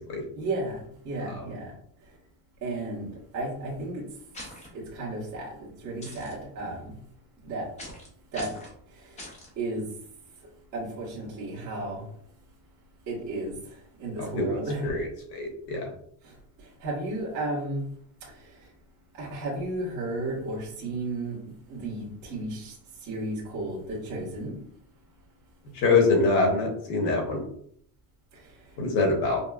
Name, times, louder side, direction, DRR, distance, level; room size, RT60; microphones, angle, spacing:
voice 1, 0.3-1.7 2.6-4.0 4.7-6.9 7.4-7.7 8.3-8.5 9.6-9.8 10.7-12.0 13.1-13.5 14.0-14.9 16.8-17.8 19.2-22.7 23.0-24.6, right 2 dB, 40° right, -5 dB, 1.3 m, -33 dB
sound 1, 4.3-4.7 6.0-6.3 7.8-8.1 8.3-8.7 9.2-9.5, left 1 dB, 15° left, 0.5 m, -41 dB
voice 2, 14.2-15.0 15.3-15.9 25.7-27.4 28.8-29.4, left 3 dB, 55° left, 0 dB, 1.0 m, -24 dB
5.2 x 2.1 x 2.3 m, 0.66 s
cardioid pair, 180°, 49 cm